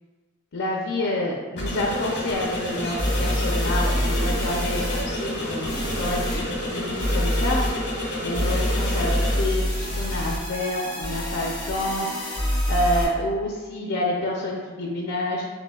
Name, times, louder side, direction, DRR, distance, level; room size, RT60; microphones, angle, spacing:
voice 1, 0.5-7.6 8.2-12.1 12.7-15.4, left 1 dB, 85° left, -2 dB, 0.5 m, -28 dB
sound 1, 1.5-9.4, left 1 dB, 60° left, 1.3 m, -30 dB
sound 2, 3.0-5.0 5.7-6.4 7.0-7.7 8.3-13.0, equal, 20° left, 1.1 m, -26 dB
7.7 x 2.6 x 2.3 m, 1.4 s
head